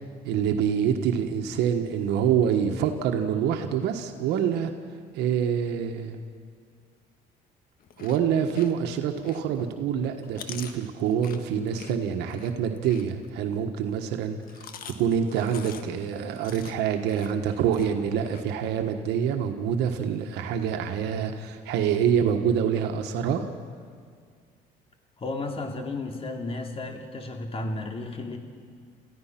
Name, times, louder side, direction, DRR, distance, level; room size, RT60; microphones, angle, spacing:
voice 1, 0.2-4.7 5.1-6.2 8.0-14.4 14.8-23.4, right 8 dB, 85° right, 5 dB, 1.5 m, -26 dB
Chewing mastication, 7.8-9.7 10.0-13.6 14.3-18.4, left 7 dB, 60° left, 1.6 m, -45 dB
voice 2, 25.2-28.4, left 2 dB, 35° left, 4 dB, 2.6 m, -33 dB
28.5 x 15.0 x 6.0 m, 2.1 s
cardioid pair, 110°, 17 cm